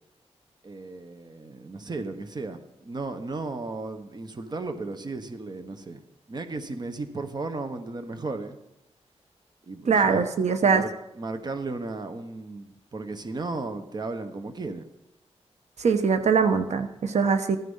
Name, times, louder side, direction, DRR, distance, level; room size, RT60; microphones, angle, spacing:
voice 1, 0.6-6.0 6.3-8.6 9.7-10.3 10.7-10.9 11.2-14.9, right 3 dB, 40° right, 8 dB, 1.2 m, -35 dB
voice 2, 9.9-10.8 15.8-17.6, right 5 dB, 75° right, 8 dB, 1.1 m, -22 dB
15.0 x 13.0 x 5.6 m, 0.87 s
wide cardioid pair, 170°, 12 cm